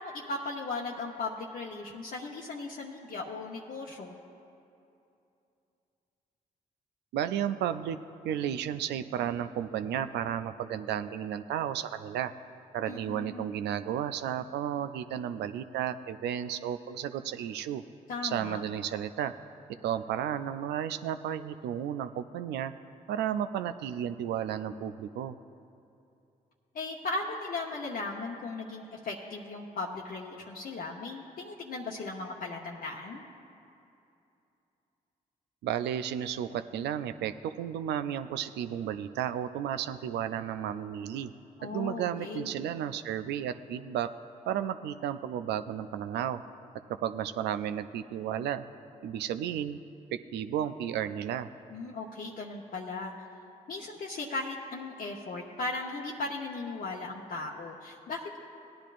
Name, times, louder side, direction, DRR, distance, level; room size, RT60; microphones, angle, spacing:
voice 1, 0.0-4.1 12.9-13.5 18.1-18.6 26.7-33.2 41.6-42.6 51.7-53.1 53.7-58.4, left 3 dB, 60° left, -3 dB, 0.9 m, -37 dB
voice 2, 7.1-8.0 8.2-12.3 12.7-17.8 18.2-19.3 19.8-22.7 23.1-25.4 35.6-41.3 41.6-44.1 44.5-46.4 47.0-48.6 49.0-49.8 50.3-51.5, right 10 dB, 80° right, 10 dB, 0.4 m, -33 dB
17.5 x 10.0 x 2.5 m, 2.7 s
supercardioid pair, 45°, 17 cm